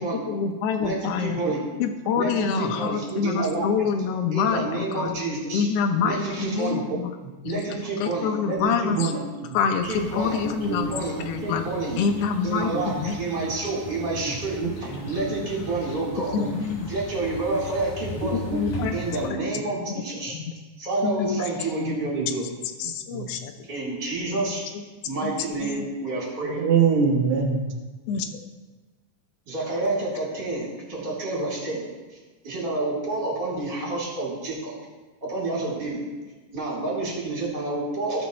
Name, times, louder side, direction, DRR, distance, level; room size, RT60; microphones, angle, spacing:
voice 1, 0.0-1.4 1.8-5.1 5.5-7.1 7.4-7.6 8.0-9.1 9.5-10.9 11.2-11.6 12.0-13.2 16.3-16.9 18.5-19.0 19.3-19.5 19.9-20.0 20.3-20.4 21.0-21.4 21.8-22.1 22.8-23.5 24.7-24.8 25.2-25.3 25.6-25.9 26.4-26.6 28.1-28.2, left 6 dB, 85° left, 5 dB, 1.3 m, -26 dB
voice 2, 0.8-1.6 2.1-3.7 4.3-5.7 6.0-6.8 7.4-9.2 9.8-12.0 12.4-16.3 16.9-18.4 18.9-20.3 20.8-22.4 23.7-24.7 25.0-26.6 29.5-31.8 32.4-34.8 35.2-36.1 36.5-38.2, right 2 dB, 30° right, -6 dB, 3.8 m, -29 dB
voice 3, 3.1-3.6 6.7-6.8 7.2-7.3 8.9-9.0 10.4-10.9 11.2-11.3 12.7-12.8 14.6-15.0 16.4-16.5 18.2-18.9 22.1-22.3 23.1-23.3 26.6-27.8, right 6 dB, 65° right, 1 dB, 2.2 m, -25 dB
Outdoor ambience(quiet), 9.8-19.3, left 2 dB, 65° left, 3.0 m, -39 dB
16.5 x 5.9 x 3.1 m, 1.3 s
omnidirectional pair, 3.8 m